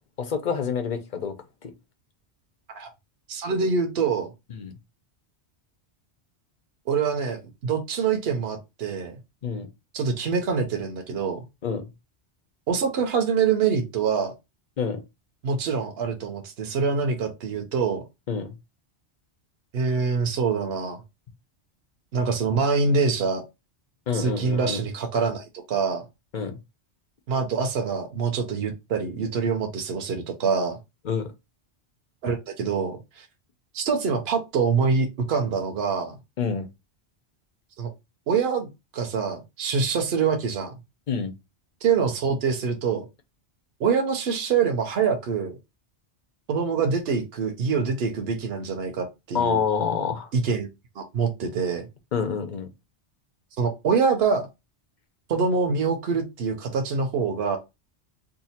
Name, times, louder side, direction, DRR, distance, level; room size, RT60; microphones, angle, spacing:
voice 1, 0.2-1.3 1.6-1.7 4.5-4.7 9.4-9.7 11.6-11.8 14.8-15.0 18.3-18.5 24.1-24.8 26.3-26.5 31.0-31.3 36.4-36.7 41.1-41.3 49.3-50.3 52.1-52.7, left 6 dB, 50° left, 0.7 m, -27 dB
voice 2, 3.3-4.3 6.9-9.2 9.9-11.4 12.7-14.3 15.4-18.0 19.7-21.0 22.1-23.4 24.1-26.0 27.3-30.8 32.2-33.3 33.7-36.2 37.8-37.9 38.3-40.7 41.8-43.1 43.8-45.5 46.5-49.6 50.3-50.7 51.0-51.9 53.6-54.5 55.3-57.6, right 5 dB, 65° right, 0.9 m, -25 dB
2.8 x 2.3 x 4.2 m
omnidirectional pair, 1.1 m